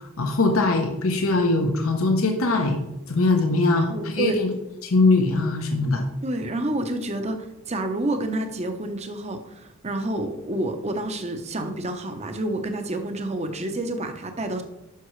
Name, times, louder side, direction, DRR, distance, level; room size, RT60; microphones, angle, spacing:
voice 1, 0.0-2.8 3.1-4.5 4.8-6.0, left 2 dB, 75° left, 3 dB, 0.9 m, -21 dB
voice 2, 3.8-4.4 6.2-14.6, right 1 dB, 30° right, 6 dB, 0.8 m, -29 dB
11.5 x 5.9 x 3.2 m, 0.94 s
head